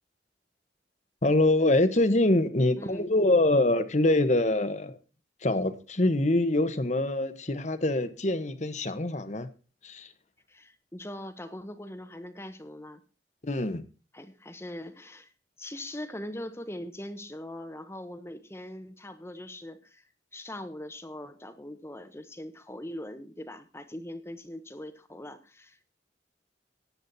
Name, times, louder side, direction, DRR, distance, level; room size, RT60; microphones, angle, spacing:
voice 1, 1.2-4.9 5.4-9.5 9.8-10.1 13.4-13.8, left 2 dB, 40° left, 1.3 m, -24 dB
voice 2, 2.8-3.1 10.5-13.0 14.1-15.3 15.6-20.1 20.3-25.9, left 1 dB, 15° left, 1.1 m, -41 dB
15.0 x 9.9 x 4.2 m
head